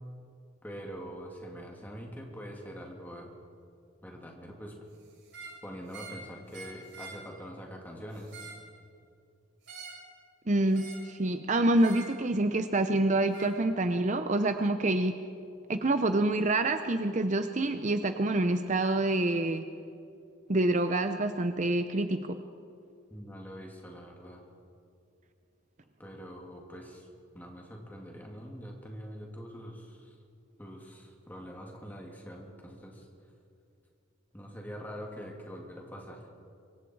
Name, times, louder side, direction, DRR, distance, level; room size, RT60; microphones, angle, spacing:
voice 1, 0.6-3.3 4.0-4.8 5.6-8.3 23.1-24.4 26.0-27.1 27.3-30.2 30.6-33.1 34.3-36.3, equal, 10° left, 0 dB, 2.9 m, -44 dB
sound 1, 5.2-5.6 5.9-6.2 6.5-7.2 8.1-8.6 9.6-10.0 10.7-11.1 11.8-12.1 13.3-13.5, right 4 dB, 55° right, 7.5 m, -45 dB
voice 2, 10.5-15.1 15.7-19.6 20.5-22.4, right 2 dB, 35° right, 8 dB, 0.7 m, -27 dB
26.0 x 24.0 x 4.7 m, 2.5 s
head